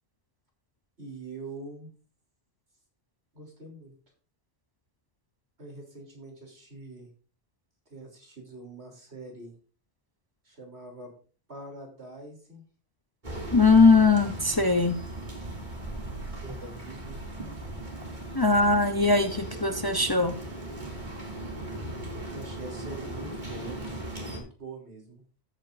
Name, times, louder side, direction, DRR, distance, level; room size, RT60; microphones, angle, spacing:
voice 1, 1.0-1.9 3.3-3.9 5.6-7.1 7.9-9.5 10.4-11.1 11.5-12.6 16.3-17.2 22.3-23.8 24.2-25.2, right 2 dB, 85° right, 1 dB, 3.6 m, -43 dB
sound 1, 13.2-24.4, right 1 dB, 45° right, 2.7 m, -38 dB
voice 2, 13.5-15.0 18.3-20.3, left 3 dB, 25° left, 7 dB, 0.6 m, -20 dB
14.0 x 8.8 x 2.6 m, 0.38 s
omnidirectional pair, 1.1 m